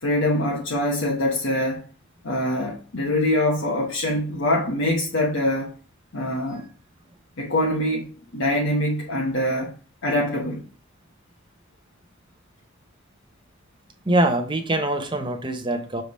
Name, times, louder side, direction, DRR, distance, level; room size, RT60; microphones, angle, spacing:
voice 1, 0.0-1.8 2.2-5.7 6.1-6.6 7.4-9.7 10.0-10.6, left 1 dB, 60° left, 1.0 m, -24 dB
voice 2, 14.1-16.0, right 1 dB, 20° right, 0.8 m, -23 dB
6.6 x 3.5 x 4.1 m
head